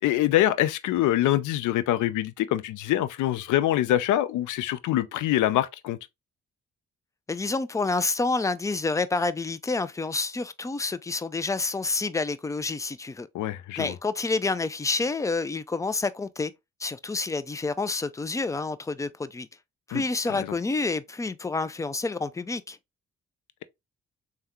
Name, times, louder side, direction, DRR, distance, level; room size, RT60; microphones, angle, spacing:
voice 1, 0.0-6.0 13.3-13.9 19.9-20.0 20.3-20.5, left 13 dB, 75° left, 0.5 m, -24 dB
voice 2, 7.3-13.3 13.8-16.5 16.8-19.5 19.9-22.8, left 3 dB, 10° left, 0.3 m, -28 dB
3.4 x 2.2 x 3.0 m
supercardioid pair, 50°, 31 cm